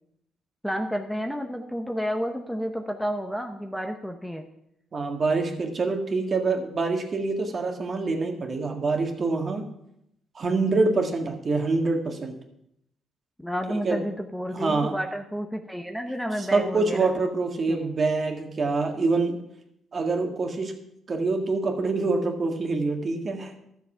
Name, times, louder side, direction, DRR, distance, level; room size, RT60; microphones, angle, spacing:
voice 1, 0.6-4.5 13.4-17.1 17.7-18.0, equal, ahead, 5 dB, 0.9 m, -31 dB
voice 2, 4.9-9.7 10.4-12.4 13.8-14.0 14.5-15.0 16.4-19.4 19.9-20.7 21.1-23.5, right 3 dB, 40° right, 4 dB, 1.8 m, -25 dB
12.5 x 7.0 x 5.7 m, 0.78 s
cardioid pair, 90°, 0 cm